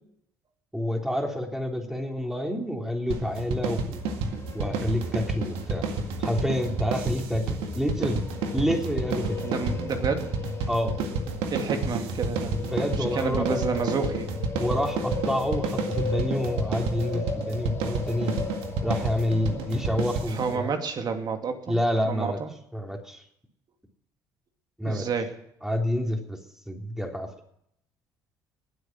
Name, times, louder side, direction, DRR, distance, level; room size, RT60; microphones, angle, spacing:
voice 1, 0.7-4.0 4.3-5.9 6.2-8.3 8.5-9.4 10.7-10.9 12.7-14.1 14.5-18.4 18.8-20.7 21.7-22.4 22.7-23.2 24.8-25.1 25.6-26.4 26.7-27.3, equal, 5° right, 2 dB, 3.6 m, -28 dB
sound 1, 3.1-20.6, right 3 dB, 70° right, 2.0 m, -31 dB
sound 2, 3.9-20.8, left 4 dB, 30° left, 2.6 m, -37 dB
voice 2, 9.4-10.3 11.5-14.4 20.3-21.8 22.0-22.5 24.8-25.3, right 5 dB, 45° right, 6 dB, 2.6 m, -30 dB
20.0 x 8.2 x 6.1 m, 0.74 s
hypercardioid pair, 60°, 9 cm